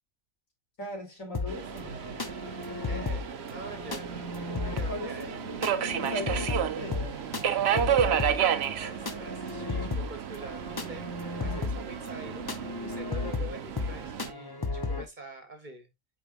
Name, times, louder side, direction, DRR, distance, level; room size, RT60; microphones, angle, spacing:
voice 1, 0.8-2.2 4.6-5.1 5.5-7.2, equal, 75° left, 3.3 m, -39 dB
sound 1, 1.3-15.1, left 3 dB, 25° left, 0.5 m, -35 dB
Subway metro underground, 1.5-14.3, right 9 dB, 60° right, 0.8 m, -32 dB
voice 2, 2.9-4.2 4.6-5.3 7.7-15.9, right 1 dB, 35° right, 1.3 m, -45 dB
8.3 x 4.6 x 2.5 m
omnidirectional pair, 1.4 m